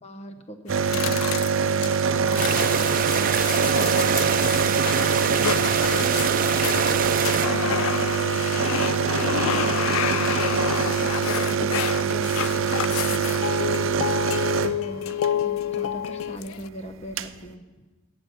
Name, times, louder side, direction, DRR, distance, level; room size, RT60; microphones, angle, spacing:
voice 1, 0.0-1.3 8.7-13.9 14.5-17.6, equal, 35° left, 7 dB, 1.1 m, -40 dB
sound 1, 0.7-16.7, left 10 dB, 85° left, 0.3 m, -29 dB
sound 2, 0.7-15.3 16.6-16.7 16.9-17.3, right 6 dB, 75° right, 0.5 m, -24 dB
voice 2, 1.6-2.7 5.6-6.5 6.7-8.9 13.6-14.3 14.6-14.8, left 1 dB, 50° left, 4 dB, 1.5 m, -42 dB
sound 3, 2.4-7.5, right 6 dB, 45° right, 0.8 m, -25 dB
17.5 x 7.3 x 6.4 m, 1.2 s
head